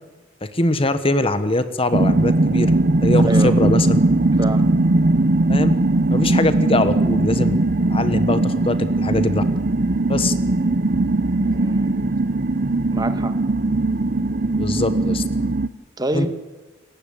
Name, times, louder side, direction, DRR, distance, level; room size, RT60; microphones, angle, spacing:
voice 1, 0.4-2.8 3.0-4.0 5.5-5.7 6.1-7.6 7.9-9.4 10.1-10.3 14.6-15.2 16.1-16.3, left 2 dB, 30° left, 11 dB, 1.3 m, -22 dB
sound 1, 1.9-15.7, right 2 dB, 45° right, 0.8 m, -19 dB
voice 2, 3.2-3.6 4.4-4.7 11.4-12.0 12.9-13.4 16.0-16.3, right 1 dB, 20° right, 9 dB, 1.5 m, -26 dB
28.5 x 15.5 x 8.9 m, 1.2 s
head